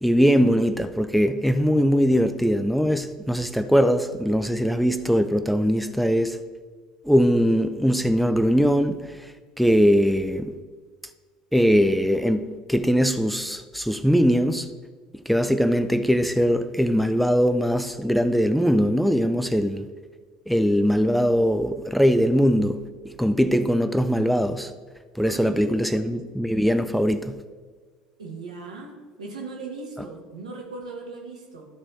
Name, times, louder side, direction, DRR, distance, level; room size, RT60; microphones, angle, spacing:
voice 1, 0.0-6.4 7.0-9.0 9.6-10.5 11.5-14.7 15.3-19.9 20.5-22.8 23.2-24.7 25.2-27.4, equal, ahead, 0.4 m, -21 dB
voice 2, 25.2-26.2 28.2-28.9 29.2-31.7, right 3 dB, 85° right, 1.4 m, -38 dB
13.0 x 4.3 x 4.3 m
hypercardioid pair, 70°, 4 cm